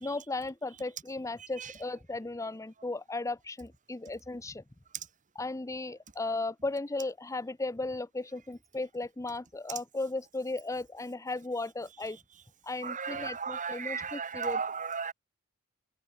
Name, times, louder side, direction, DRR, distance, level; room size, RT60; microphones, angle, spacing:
voice 1, 0.0-4.6 5.4-12.2 12.6-14.6, left 2 dB, 15° left, 0.6 m, -36 dB
voice 2, 12.8-15.1, right 6 dB, 35° right, 2.6 m, -35 dB
head